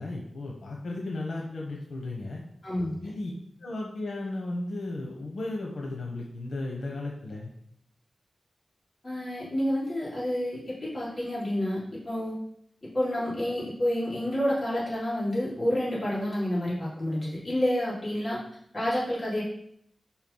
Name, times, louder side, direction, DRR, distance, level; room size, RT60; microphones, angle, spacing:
voice 1, 0.0-2.4 3.0-3.3 3.6-7.5, left 2 dB, 85° left, -1 dB, 1.1 m, -35 dB
voice 2, 2.6-3.1 9.0-12.4 12.8-18.4 18.7-19.4, left 1 dB, 30° left, -8 dB, 3.0 m, -29 dB
4.9 x 4.7 x 5.5 m, 0.68 s
wide cardioid pair, 85°, 0 cm